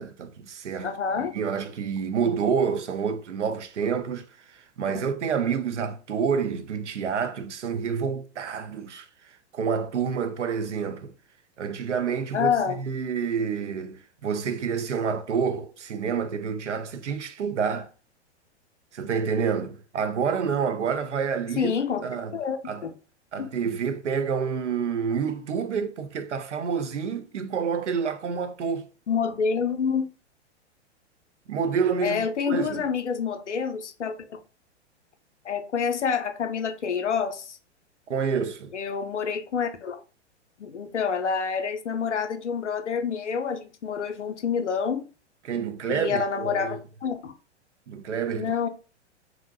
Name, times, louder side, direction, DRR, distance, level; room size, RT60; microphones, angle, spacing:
voice 1, 0.0-4.3 4.5-9.1 9.5-11.1 11.6-17.9 18.9-21.8 22.0-22.4 22.6-22.8 23.3-28.9 31.5-32.8 38.1-38.7 45.4-46.8 47.9-48.5, right 6 dB, 80° right, 0.5 m, -28 dB
voice 2, 0.8-1.3 4.9-5.0 12.3-12.8 21.6-22.0 22.3-22.9 23.4-23.5 29.1-30.1 32.0-34.4 35.4-37.6 38.7-40.0 40.6-45.0 45.9-47.3 48.3-48.7, left 6 dB, 85° left, 0.5 m, -27 dB
2.6 x 2.1 x 2.6 m
figure-of-eight pair, 100°, 35 cm